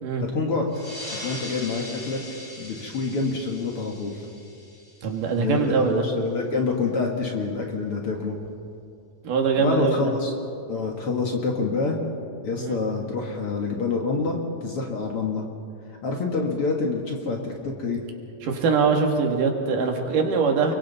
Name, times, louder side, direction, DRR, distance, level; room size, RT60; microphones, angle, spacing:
voice 1, 0.3-0.7 1.2-2.2 2.6-4.2 5.4-8.4 9.6-10.3 10.7-12.0 12.4-15.4 16.0-18.0, left 4 dB, 50° left, 1 dB, 2.2 m, -27 dB
sound 1, 0.7-5.8, left 1 dB, 25° left, 7.5 m, -40 dB
voice 2, 5.0-6.1 9.2-10.1 12.6-12.8 18.4-20.7, right 5 dB, 75° right, 2 dB, 3.4 m, -22 dB
29.5 x 23.0 x 4.1 m, 2.5 s
omnidirectional pair, 3.8 m